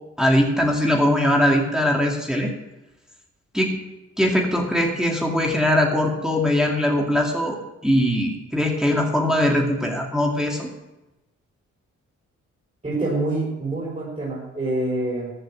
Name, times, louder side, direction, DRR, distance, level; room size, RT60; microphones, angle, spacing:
voice 1, 0.2-2.5 3.5-3.8 4.2-7.6 7.8-10.7, left 1 dB, ahead, -1 dB, 2.5 m, -21 dB
voice 2, 12.8-15.3, right 2 dB, 25° right, -7 dB, 6.2 m, -26 dB
14.5 x 7.7 x 7.6 m, 1.0 s
cardioid pair, 70°, 30 cm